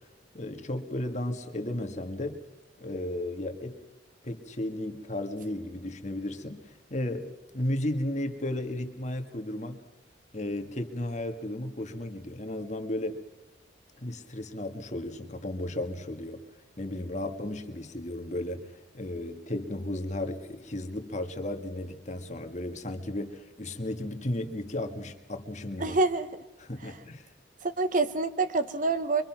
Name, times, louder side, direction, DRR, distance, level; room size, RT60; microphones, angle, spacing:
voice 1, 0.3-2.4 2.8-3.8 4.2-9.8 10.3-13.2 14.0-16.4 16.8-26.0 26.6-27.3, left 1 dB, 40° left, 6 dB, 1.9 m, -34 dB
voice 2, 25.8-26.3 26.8-26.9 27.6-29.2, right 3 dB, 45° right, 11 dB, 1.1 m, -26 dB
25.0 x 24.0 x 6.0 m, 1.1 s
head